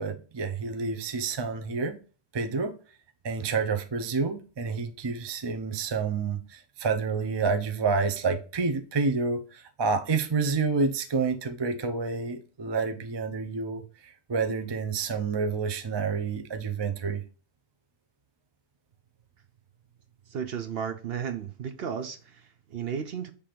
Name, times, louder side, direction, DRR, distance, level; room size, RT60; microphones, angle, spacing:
voice 1, 0.0-2.0 2.3-2.7 3.2-17.2, right 4 dB, 35° right, 0.4 m, -29 dB
voice 2, 20.3-23.3, right 7 dB, 60° right, 0.7 m, -34 dB
5.8 x 3.5 x 5.1 m
omnidirectional pair, 1.3 m